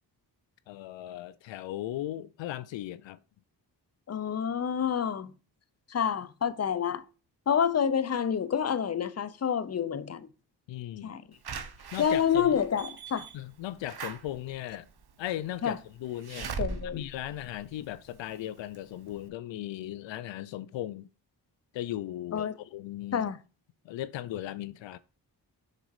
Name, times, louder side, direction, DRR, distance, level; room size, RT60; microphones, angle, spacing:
voice 1, 0.7-3.2 10.7-11.2 11.9-12.6 13.3-14.9 15.2-16.5 16.8-21.1 21.7-23.3 23.8-25.0, left 13 dB, 85° left, 0.5 m, -37 dB
voice 2, 4.1-5.3 5.9-7.0 7.5-10.3 11.0-11.2 12.0-13.3 15.6-15.8 16.6-17.0 22.3-22.6 23.1-23.4, left 8 dB, 35° left, 0.7 m, -28 dB
Slam / Alarm, 11.4-18.3 18.7-18.8 19.1-19.2, right 5 dB, 60° right, 1.2 m, -41 dB
6.6 x 4.1 x 4.7 m
cardioid pair, 50°, 43 cm